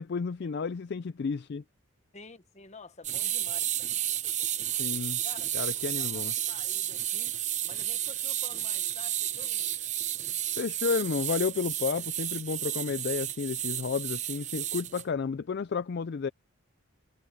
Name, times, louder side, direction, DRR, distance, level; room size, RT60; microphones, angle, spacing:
voice 1, 0.0-1.6 4.6-5.2 5.5-6.3 10.6-16.3, left 5 dB, 50° left, 0.4 m, -32 dB
voice 2, 2.1-3.7 4.2-4.6 5.2-7.4 7.6-9.7, left 3 dB, 30° left, 1.2 m, -50 dB
sound 1, 3.0-15.0, right 12 dB, 35° right, 0.7 m, -32 dB
head